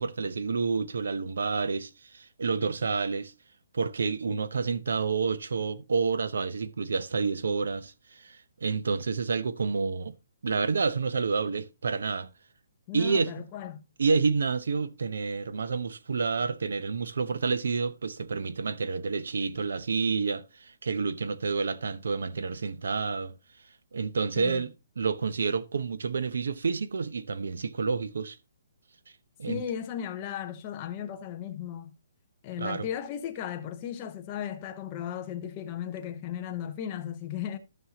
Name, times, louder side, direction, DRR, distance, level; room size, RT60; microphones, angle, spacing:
voice 1, 0.0-3.3 3.7-10.1 10.4-12.3 12.9-13.3 14.0-23.3 23.9-24.7 25.0-28.4 29.4-29.6 32.6-32.9, right 4 dB, 70° right, 0.8 m, -29 dB
voice 2, 12.9-13.8 24.4-24.6 29.5-31.9 32.4-37.6, left 9 dB, 15° left, 0.7 m, -36 dB
14.5 x 5.5 x 2.9 m
hypercardioid pair, 180°, 0 cm